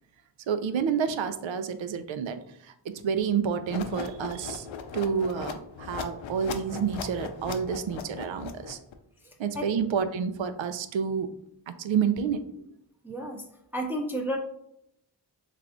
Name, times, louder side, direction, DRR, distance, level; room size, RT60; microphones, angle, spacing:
voice 1, 0.5-4.7 4.9-8.8 9.4-11.3 11.7-12.4, right 7 dB, 75° right, 10 dB, 0.6 m, -29 dB
sound 1, 3.7-8.9, left 6 dB, 75° left, 0.6 m, -38 dB
voice 2, 9.2-9.7 13.0-13.4 13.7-14.4, equal, 5° right, 0 dB, 0.7 m, -32 dB
3.5 x 3.3 x 3.7 m, 0.75 s
cardioid pair, 50°, 46 cm